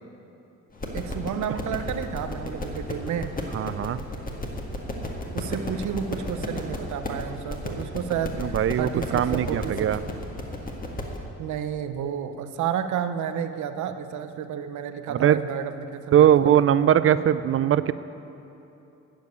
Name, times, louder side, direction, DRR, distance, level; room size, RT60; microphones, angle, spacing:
sound 1, 0.7-11.2, left 1 dB, 30° left, 1.7 m, -33 dB
voice 1, 0.9-3.3 5.3-9.9 11.4-16.5, right 8 dB, 75° right, 9 dB, 0.8 m, -31 dB
voice 2, 3.5-4.0 8.4-10.0 15.1-15.4 16.1-17.9, right 10 dB, 45° right, 15 dB, 0.4 m, -20 dB
14.0 x 5.2 x 9.3 m, 2.9 s
cardioid pair, 90°, 30 cm